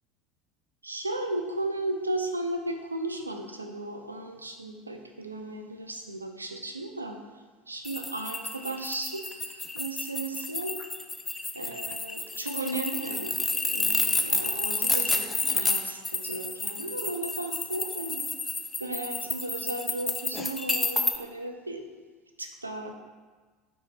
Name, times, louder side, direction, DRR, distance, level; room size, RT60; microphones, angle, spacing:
voice 1, 0.8-7.2 7.7-10.8 11.5-13.3 13.6-18.2 18.8-21.8 22.4-22.9, right 2 dB, 85° right, 4 dB, 0.3 m, -35 dB
sound 1, 7.8-21.2, left 3 dB, 15° left, 0.3 m, -30 dB
4.4 x 2.9 x 3.5 m, 1.4 s
figure-of-eight pair, 70°, 0 cm